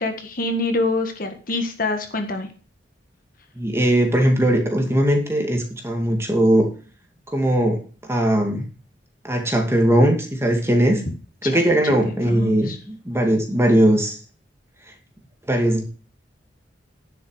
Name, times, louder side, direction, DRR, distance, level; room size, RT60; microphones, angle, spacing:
voice 1, 0.0-2.5 11.4-11.9 12.2-12.8, left 2 dB, 50° left, 6 dB, 1.6 m, -26 dB
voice 2, 3.6-6.7 7.3-7.8 8.1-8.7 9.2-11.0 11.4-14.1 15.5-15.9, right 1 dB, 15° right, 3 dB, 2.3 m, -19 dB
10.5 x 7.7 x 4.9 m, 0.38 s
head